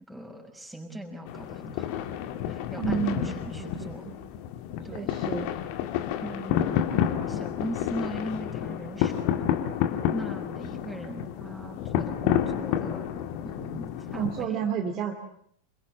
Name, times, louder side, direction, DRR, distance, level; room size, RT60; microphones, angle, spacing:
voice 1, 0.1-1.9 2.5-4.0 4.8-5.1 6.2-9.6 10.1-13.2 13.4-14.7, right 1 dB, ahead, 1 dB, 6.0 m, -39 dB
sound 1, 1.2-14.5, left 10 dB, 45° left, 2.2 m, -30 dB
voice 2, 2.8-4.1 4.9-5.5 14.1-15.2, right 8 dB, 35° right, 3 dB, 2.6 m, -31 dB
27.0 x 23.5 x 7.8 m, 0.67 s
figure-of-eight pair, 90°, 0 cm